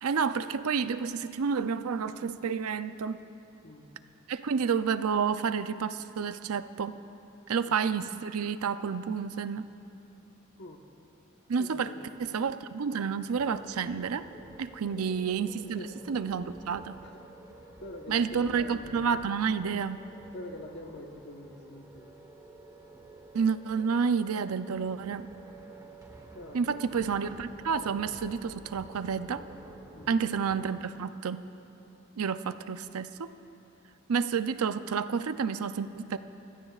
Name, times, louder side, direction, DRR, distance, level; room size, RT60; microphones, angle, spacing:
voice 1, 0.0-3.2 4.3-7.0 7.5-9.7 11.5-11.9 12.2-14.3 14.6-15.8 16.1-17.0 18.1-20.0 23.3-25.3 26.5-29.5 30.1-31.4 32.2-33.3 34.1-36.2, right 6 dB, 85° right, 12 dB, 0.5 m, -30 dB
voice 2, 11.6-12.1 14.9-15.0 15.6-15.9 17.0-17.2 17.5-19.0 20.3-22.1 26.3-27.0 29.9-30.2, left 1 dB, 55° left, 3 dB, 1.2 m, -45 dB
sound 1, 13.3-30.8, right 1 dB, 15° right, 1.1 m, -51 dB
24.5 x 17.0 x 2.4 m, 2.8 s
head